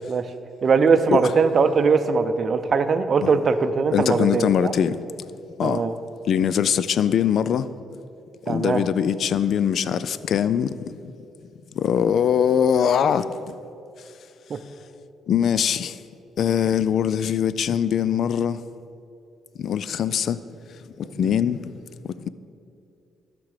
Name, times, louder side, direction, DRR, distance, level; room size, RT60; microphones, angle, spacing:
voice 1, 0.6-4.7 5.6-5.9 8.5-8.8 14.5-14.6 21.2-21.3, right 5 dB, 45° right, 0.6 m, -20 dB
voice 2, 3.9-5.0 5.6-5.8 6.3-7.7 8.5-11.1 11.7-13.6 15.3-16.0 16.4-18.6 19.6-20.4 21.0-21.7 22.0-22.3, left 8 dB, 65° left, 0.3 m, -22 dB
12.5 x 6.0 x 4.9 m
cardioid pair, 90°, 0 cm